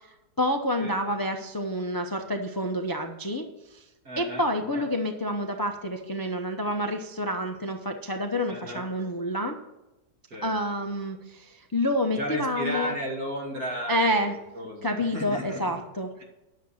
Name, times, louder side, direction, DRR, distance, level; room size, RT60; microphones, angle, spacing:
voice 1, 0.4-3.8 4.2-9.6 10.4-12.9 13.9-14.3 14.8-16.1, equal, 20° left, 4 dB, 0.5 m, -28 dB
voice 2, 4.0-4.9 8.5-8.9 10.3-10.5 12.1-15.8, equal, 65° right, -1 dB, 3.0 m, -34 dB
10.5 x 7.1 x 6.4 m, 0.97 s
omnidirectional pair, 1.6 m